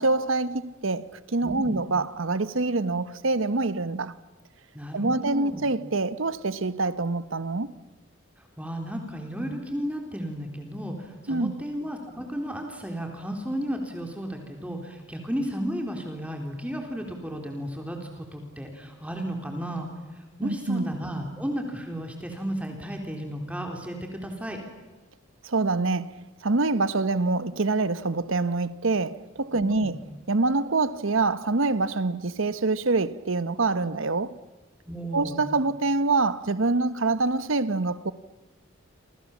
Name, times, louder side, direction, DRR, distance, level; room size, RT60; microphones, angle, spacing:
voice 1, 0.0-4.1 4.9-7.7 11.3-11.5 20.4-20.8 25.4-30.0 30.3-34.4 35.1-38.1, right 3 dB, 75° right, 1.0 m, -25 dB
voice 2, 1.4-1.8 4.7-5.7 8.6-18.0 18.3-19.9 20.4-24.6 29.5-30.0 34.9-35.5, equal, 5° right, 3.8 m, -33 dB
28.5 x 27.5 x 7.4 m
head